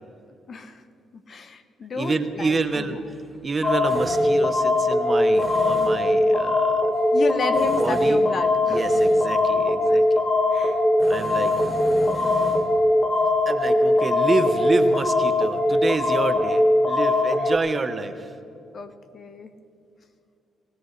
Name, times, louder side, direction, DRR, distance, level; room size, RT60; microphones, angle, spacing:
voice 1, 0.5-0.8 1.1-2.9 7.1-8.8 10.5-10.8 11.9-12.4 13.7-14.2 17.4-17.5 18.7-19.5, left 3 dB, 45° left, 10 dB, 0.9 m, -33 dB
voice 2, 2.0-3.2 3.4-6.9 7.8-8.2 8.6-10.1 11.1-11.5 13.5-18.4, right 3 dB, 30° right, 9 dB, 1.0 m, -28 dB
Tools, 2.3-16.4, right 1 dB, ahead, 3.4 m, -41 dB
sound 1, 3.6-17.6, left 1 dB, 30° left, 1.2 m, -21 dB
19.5 x 17.0 x 3.3 m, 2.6 s
cardioid pair, 90°, 0 cm